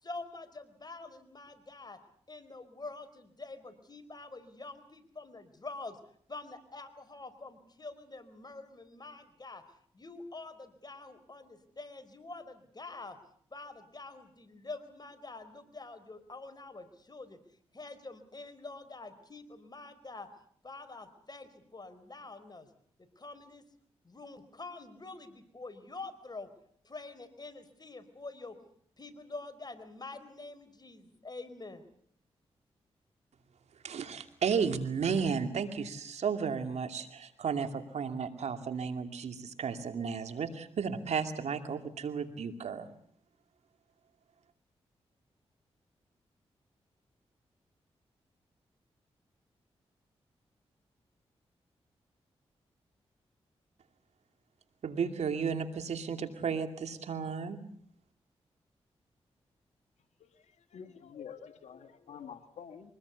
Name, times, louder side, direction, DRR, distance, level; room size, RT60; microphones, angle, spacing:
voice 1, 0.0-2.0 2.3-6.0 6.3-9.6 9.9-13.2 13.5-17.4 17.7-20.3 20.6-22.7 23.2-23.6 24.0-26.5 26.8-28.6 29.0-31.8, left 3 dB, 35° left, 11 dB, 4.3 m, -46 dB
voice 2, 33.8-42.9 54.8-57.6, right 6 dB, 75° right, 8 dB, 2.5 m, -33 dB
voice 3, 60.2-62.9, left 7 dB, 85° left, 9 dB, 1.9 m, -48 dB
24.0 x 20.0 x 8.2 m, 0.62 s
cardioid pair, 50°, 11 cm